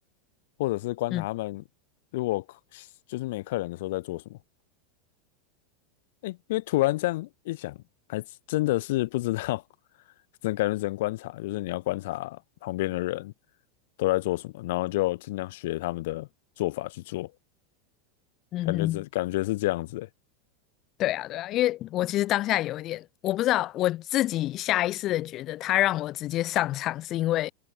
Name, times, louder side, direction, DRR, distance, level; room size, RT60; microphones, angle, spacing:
voice 1, 0.6-1.6 2.1-2.4 2.7-4.4 6.2-7.8 8.1-9.6 10.4-13.3 14.0-16.3 16.6-17.3 18.6-20.1, left 18 dB, 70° left, 2.7 m, -29 dB
voice 2, 18.5-19.0 21.0-27.5, left 15 dB, 40° left, 5.0 m, -27 dB
supercardioid pair, 125°, 0 cm